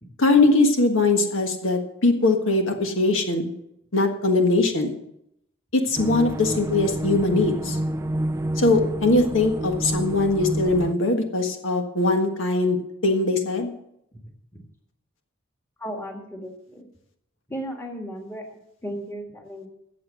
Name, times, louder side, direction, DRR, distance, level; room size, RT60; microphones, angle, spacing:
voice 1, 0.2-3.5 3.9-4.9 5.7-7.8 8.6-13.7, left 2 dB, 75° left, 4 dB, 1.6 m, -21 dB
sound 1, 6.0-10.9, right 1 dB, 15° right, 0.4 m, -28 dB
voice 2, 15.8-16.9 17.5-19.7, equal, 10° left, 2 dB, 1.8 m, -35 dB
14.5 x 7.5 x 6.2 m, 0.77 s
head